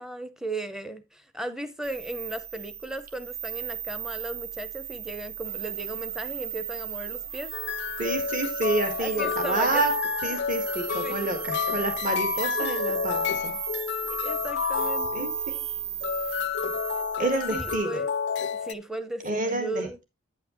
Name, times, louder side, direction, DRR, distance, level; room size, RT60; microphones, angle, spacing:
voice 1, 0.0-7.5 9.0-9.9 10.2-10.4 11.0-11.4 12.6-12.7 14.2-15.3 17.2-18.1 18.6-20.0, right 1 dB, 5° right, 0.7 m, -36 dB
sound 1, 1.8-17.8, right 8 dB, 70° right, 1.0 m, -35 dB
sound 2, 7.5-18.7, left 7 dB, 55° left, 0.4 m, -30 dB
voice 2, 8.0-9.9 10.2-13.6 15.1-15.6 17.2-18.0 19.2-20.0, right 2 dB, 40° right, 1.7 m, -29 dB
9.3 x 8.4 x 3.0 m
head